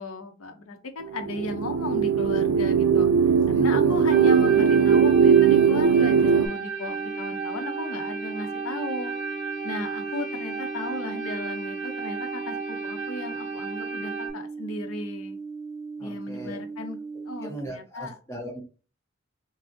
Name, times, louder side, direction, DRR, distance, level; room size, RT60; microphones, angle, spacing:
voice 1, 0.0-3.1 3.5-9.1 9.6-15.4 16.0-17.0 17.3-18.2, left 2 dB, 85° left, 6 dB, 0.7 m, -35 dB
sound 1, 1.1-6.5, right 6 dB, 80° right, 0.4 m, -19 dB
voice 2, 3.5-4.0 16.0-16.6 17.4-18.6, right 1 dB, 15° left, 0 dB, 0.8 m, -38 dB
sound 2, 4.1-14.3, right 4 dB, 30° right, 1.3 m, -34 dB
sound 3, 6.9-17.7, right 4 dB, 50° right, 0.7 m, -38 dB
5.5 x 2.0 x 2.6 m, 0.36 s
head